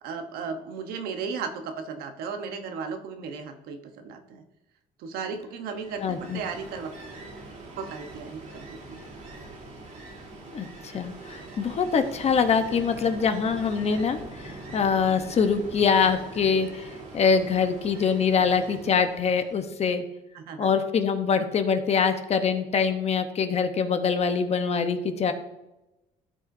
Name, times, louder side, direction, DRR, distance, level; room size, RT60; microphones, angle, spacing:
voice 1, 0.0-4.4 5.0-6.9 7.8-9.1 20.3-20.7, right 5 dB, 85° right, 7 dB, 1.0 m, -35 dB
Ocean, 5.7-19.7, right 2 dB, 55° right, 2.7 m, -43 dB
voice 2, 6.0-6.4 10.5-16.9 17.1-20.0 20.6-25.3, left 6 dB, 45° left, 8 dB, 0.9 m, -24 dB
12.5 x 5.0 x 2.7 m, 0.95 s
cardioid pair, 100°, 16 cm